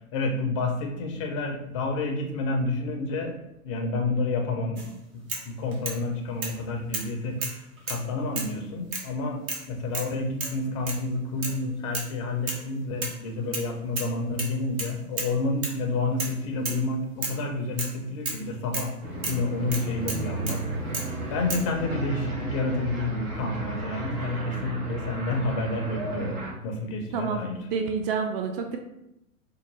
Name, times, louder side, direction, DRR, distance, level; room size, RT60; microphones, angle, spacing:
voice 1, 0.1-3.4 3.6-4.9 5.1-20.6 20.9-21.0 21.3-27.7, left 2 dB, 25° left, 2 dB, 0.3 m, -29 dB
sound 1, 4.8-4.9 5.3-6.0 6.4-6.6 6.9-7.1 7.4-8.0 8.4-8.6 8.9-9.1 9.5-9.7 9.9-10.1 10.4-10.6 10.9-11.0 11.4-11.6 11.9-12.1 12.5-12.7 13.0-13.7 14.0-14.1 14.4-15.3 15.6-15.8 16.2-16.4 16.7-16.8 17.2-17.4 17.8-18.0 18.3-18.4 18.7-18.9 19.2-19.4 19.7-20.6 20.9-21.1 21.5-21.7, right 3 dB, 65° right, 1.1 m, -33 dB
sound 2, 19.0-26.5, right 2 dB, 90° right, 1.3 m, -33 dB
voice 2, 20.0-20.7 27.1-27.4 27.7-28.8, right 5 dB, 45° right, 5 dB, 0.4 m, -30 dB
4.4 x 2.2 x 3.0 m, 0.83 s
figure-of-eight pair, 105°, 44 cm